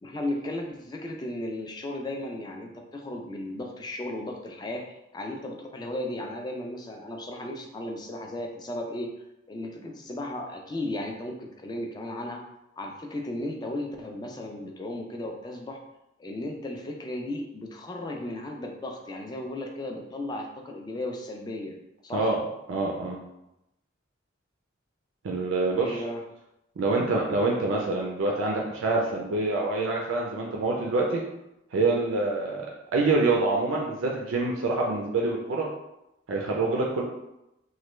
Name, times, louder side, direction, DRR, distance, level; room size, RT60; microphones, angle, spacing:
voice 1, 0.0-12.4 12.8-15.8 16.2-21.7 22.0-22.3 25.8-26.2, left 1 dB, 20° left, 2 dB, 0.3 m, -35 dB
voice 2, 22.7-23.2 25.2-26.0 26.8-31.2 31.7-32.7 32.9-35.7 36.3-37.0, right 3 dB, 90° right, -1 dB, 0.4 m, -26 dB
3.2 x 2.2 x 3.1 m, 0.90 s
head